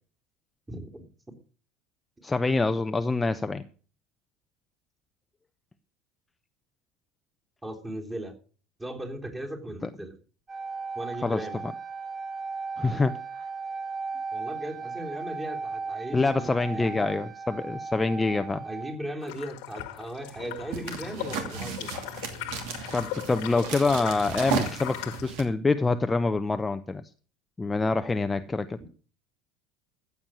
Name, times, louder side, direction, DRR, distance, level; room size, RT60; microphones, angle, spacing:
voice 1, 0.7-1.1 7.6-8.4 8.8-10.2 11.0-11.6 14.3-17.1 18.6-22.1 23.3-23.7 24.0-24.2, right 1 dB, 15° right, 2 dB, 3.4 m, -38 dB
voice 2, 2.2-3.6 9.8-9.9 11.2-11.7 12.8-13.2 16.1-18.6 22.9-27.0 27.6-28.8, left 3 dB, 15° left, 10 dB, 0.8 m, -26 dB
sound 1, 10.5-18.9, right 4 dB, 30° right, 7.1 m, -36 dB
sound 2, 19.2-25.2, left 15 dB, 65° left, 1.5 m, -39 dB
sound 3, 20.3-25.4, right 7 dB, 60° right, 2.6 m, -35 dB
14.5 x 8.4 x 6.3 m, 0.40 s
figure-of-eight pair, 70°, 0 cm